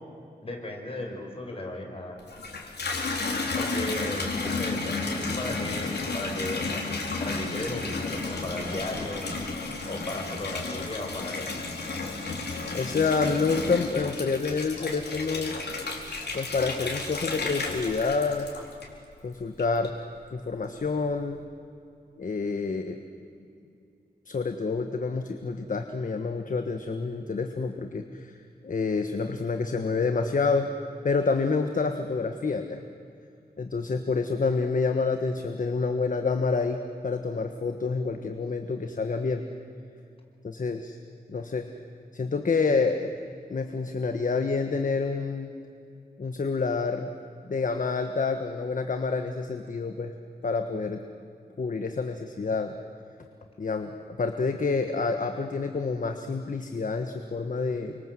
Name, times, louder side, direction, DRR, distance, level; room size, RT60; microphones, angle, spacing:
voice 1, 0.4-2.2 3.6-6.9 7.2-9.3 9.8-11.5, left 1 dB, 35° left, 1 dB, 5.3 m, -36 dB
Water tap faucet / Bathtub (filling or washing), 2.2-19.1 19.6-20.2, left 3 dB, 85° left, 4.2 m, -32 dB
voice 2, 12.7-15.5 16.3-18.5 19.2-19.9 20.3-21.4 22.2-23.0 24.3-28.3 28.6-30.7 31.0-32.8 33.6-39.4 40.4-41.0 41.3-41.7 42.1-43.1 43.5-45.5 46.2-47.1 47.5-50.1 50.4-51.0 51.6-52.8 53.6-58.0, left 4 dB, 50° left, 6 dB, 1.4 m, -28 dB
29.0 x 25.0 x 7.8 m, 2.6 s
wide cardioid pair, 135°, 17 cm